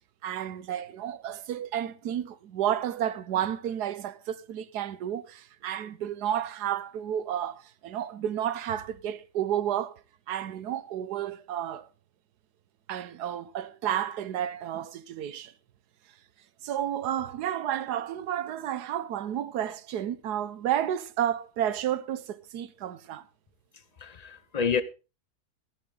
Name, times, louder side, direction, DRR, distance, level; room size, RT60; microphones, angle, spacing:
voice 1, 0.2-10.0 10.3-11.9 12.9-15.5 16.6-23.2, right 10 dB, 75° right, 1.4 m, -31 dB
voice 2, 24.0-24.8, left 6 dB, 65° left, 0.4 m, -28 dB
14.0 x 11.0 x 3.8 m
omnidirectional pair, 1.7 m